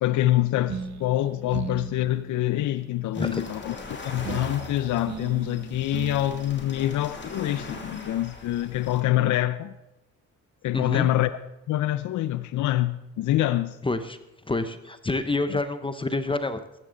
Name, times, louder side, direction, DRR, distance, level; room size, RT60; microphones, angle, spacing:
voice 1, 0.0-3.8 4.0-9.7 10.6-11.3 11.7-13.8 15.5-15.6, left 14 dB, 75° left, 0.6 m, -25 dB
sound 1, 0.7-8.2, right 7 dB, 65° right, 1.2 m, -40 dB
sound 2, 3.1-9.0, left 3 dB, 40° left, 2.7 m, -41 dB
voice 2, 10.7-11.1 13.8-14.2 14.5-16.8, left 2 dB, 15° left, 0.9 m, -28 dB
15.0 x 13.5 x 3.9 m
cardioid pair, 90°, 30 cm